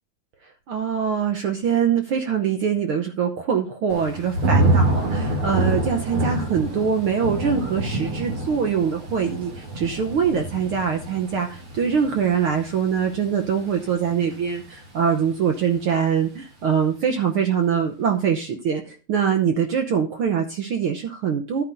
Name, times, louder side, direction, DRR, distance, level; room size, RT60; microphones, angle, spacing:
voice 1, 0.7-21.6, right 7 dB, 70° right, 4 dB, 1.3 m, -23 dB
Thunder / Rain, 3.9-14.8 15.2-15.7, right 2 dB, 45° right, 3.6 m, -26 dB
13.0 x 9.4 x 2.6 m, 0.34 s
omnidirectional pair, 3.5 m